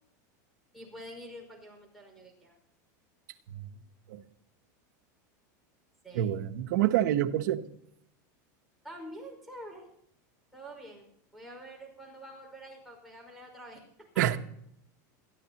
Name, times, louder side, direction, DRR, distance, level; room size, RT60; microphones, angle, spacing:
voice 1, 0.7-2.6 6.0-6.3 8.8-9.9 10.5-11.1 11.3-13.8, equal, ahead, -2 dB, 5.3 m, -47 dB
voice 2, 6.1-7.6 14.2-14.4, right 12 dB, 75° right, 7 dB, 1.1 m, -27 dB
21.5 x 14.0 x 3.0 m, 0.73 s
supercardioid pair, 140°, 10 cm